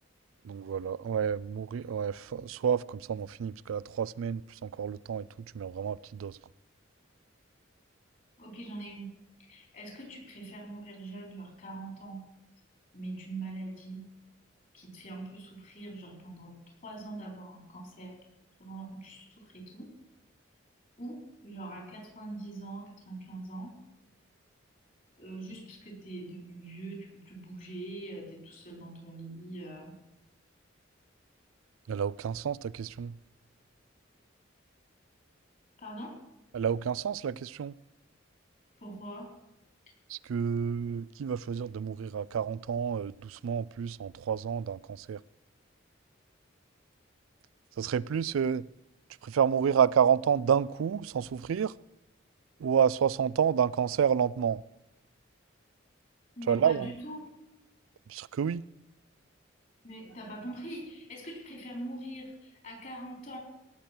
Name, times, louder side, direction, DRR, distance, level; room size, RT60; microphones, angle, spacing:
voice 1, 0.4-5.2 5.5-6.4 31.9-33.1 36.5-37.7 40.1-45.2 47.8-48.6 49.2-51.7 52.6-54.6 56.5-56.9 58.1-58.6, right 7 dB, 85° right, 0.3 m, -29 dB
voice 2, 8.4-9.1 9.4-12.3 12.9-14.1 14.7-18.1 18.6-19.9 21.0-23.7 25.2-30.0 35.8-36.2 38.8-39.3 56.4-57.3 59.8-63.4, right 2 dB, 40° left, 4.2 m, -43 dB
17.5 x 7.0 x 6.0 m
head